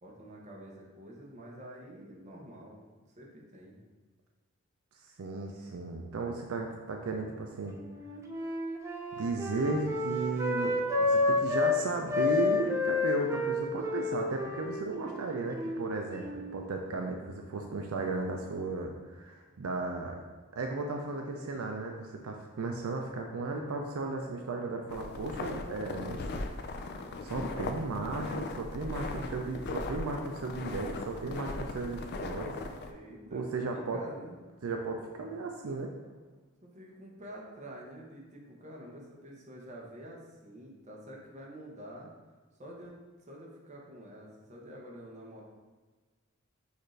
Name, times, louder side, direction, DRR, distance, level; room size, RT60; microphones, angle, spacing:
voice 1, 0.0-2.8 3.2-3.8 28.9-29.4 32.8-34.4 36.6-42.1 42.6-45.4, equal, 35° right, -2 dB, 0.8 m, -48 dB
voice 2, 5.2-7.8 9.1-20.1 20.5-26.4 27.2-29.1 29.3-32.6 33.3-34.0 34.6-35.9, right 3 dB, 75° right, 2 dB, 0.4 m, -35 dB
Wind instrument woodwind instrument, 7.8-11.8 12.1-16.6, left 3 dB, 15° right, 0.4 m, -30 dB
sound 1, 24.9-32.9, left 2 dB, 50° left, 0.4 m, -38 dB
6.4 x 2.6 x 3.2 m, 1.3 s
head